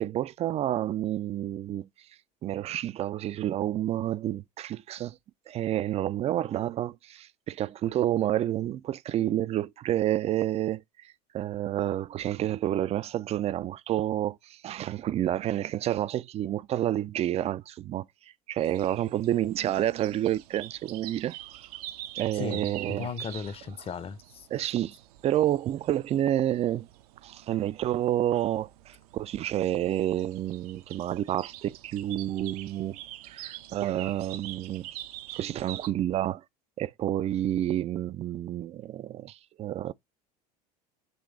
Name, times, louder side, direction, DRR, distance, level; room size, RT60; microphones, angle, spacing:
voice 1, 0.0-1.9 2.4-5.2 5.5-18.0 18.5-21.7 22.2-23.1 24.5-25.0 25.2-26.9 27.2-33.0 33.3-34.9 35.3-36.4 36.8-39.9, right 12 dB, 30° right, 0.4 m, -29 dB
sound 1, 18.6-35.9, right 13 dB, 65° right, 0.6 m, -46 dB
voice 2, 22.3-24.5, left 6 dB, 25° left, 0.8 m, -36 dB
7.9 x 3.1 x 4.0 m
hypercardioid pair, 75°, 21 cm